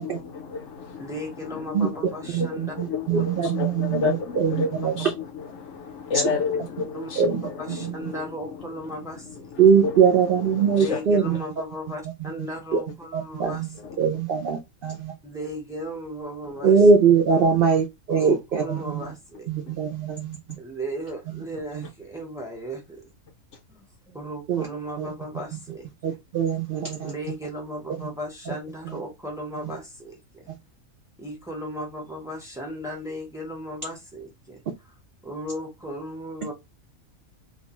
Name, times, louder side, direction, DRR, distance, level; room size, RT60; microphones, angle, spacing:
voice 1, 0.0-11.4 13.5-14.0 16.6-16.7 19.7-19.8, left 5 dB, 65° left, 0.8 m, -32 dB
voice 2, 1.0-2.7 6.9-7.1 7.6-9.5 10.7-13.9 15.2-16.8 17.3-17.6 18.1-19.8 20.6-23.1 23.7-26.2 27.0-30.4 31.2-34.6 35.2-36.5, equal, 5° right, 0.6 m, -36 dB
voice 3, 2.3-5.1 7.2-8.1 9.6-11.4 12.2-12.8 13.1-15.1 16.6-19.1 19.5-20.4 21.3-21.4 21.8-21.9 24.5-24.7 25.0-25.1 25.5-25.6 26.0-27.1 28.5-28.6 28.8-29.0 29.6-29.8 30.5-30.6, right 6 dB, 65° right, 0.5 m, -22 dB
2.4 x 2.2 x 2.9 m
omnidirectional pair, 1.5 m